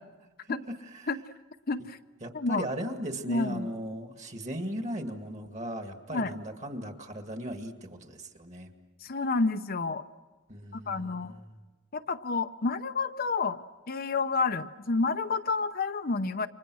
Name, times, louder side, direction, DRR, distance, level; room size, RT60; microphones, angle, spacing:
voice 1, 0.4-1.1 2.2-8.7 10.5-11.6, equal, 35° right, 5 dB, 2.1 m, -37 dB
voice 2, 1.7-2.0 2.3-2.7 3.3-3.7 6.1-6.3 9.0-10.0 10.9-11.3 11.9-13.6 13.9-16.5, left 3 dB, 45° left, 8 dB, 0.8 m, -29 dB
30.0 x 25.5 x 6.3 m, 1.2 s
head